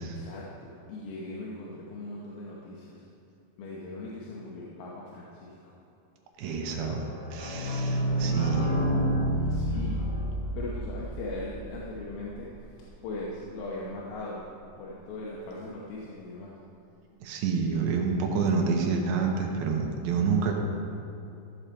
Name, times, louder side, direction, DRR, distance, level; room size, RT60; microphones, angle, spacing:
voice 1, 0.1-3.0 3.6-5.7 6.4-7.0 7.8-8.7 9.2-10.1 10.6-12.5 13.0-14.5 14.8-16.5 17.5-17.8, left 2 dB, 75° left, -5 dB, 2.8 m, -40 dB
voice 2, 6.4-7.0 7.3-8.7 17.2-20.5, right 5 dB, 80° right, 1 dB, 2.8 m, -28 dB
sound 1, 7.0-12.5 12.9-13.0 13.1-13.2 13.5-13.6, right 1 dB, 40° left, 1.3 m, -29 dB
14.5 x 6.8 x 4.4 m, 2.7 s
omnidirectional pair, 4.5 m